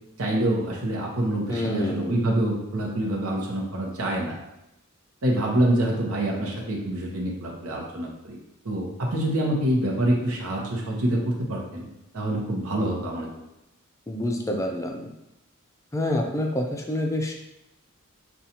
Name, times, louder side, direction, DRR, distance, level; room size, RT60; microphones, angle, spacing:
voice 1, 0.2-4.3 5.2-8.4 8.6-11.9 12.1-13.3, right 1 dB, 80° right, -2 dB, 0.9 m, -26 dB
voice 2, 1.5-2.1 14.1-15.1 15.9-17.3, left 1 dB, 15° left, 2 dB, 0.4 m, -27 dB
5.2 x 2.4 x 2.8 m, 0.88 s
head